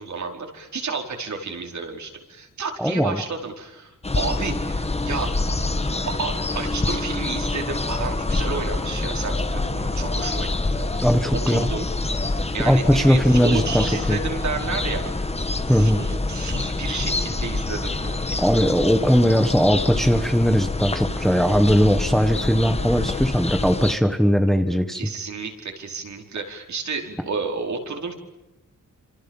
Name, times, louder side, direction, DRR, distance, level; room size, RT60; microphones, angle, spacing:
voice 1, 0.0-5.3 6.0-11.1 11.5-11.9 12.5-15.1 15.7-18.5 25.0-28.1, right 4 dB, 60° right, 2 dB, 4.9 m, -31 dB
voice 2, 2.8-3.2 11.0-11.7 12.6-14.2 15.7-16.0 18.4-25.1, equal, ahead, 7 dB, 1.5 m, -19 dB
sound 1, 4.0-23.9, left 2 dB, 20° left, 1.4 m, -26 dB
29.5 x 27.0 x 7.4 m, 1.0 s
wide cardioid pair, 180°, 32 cm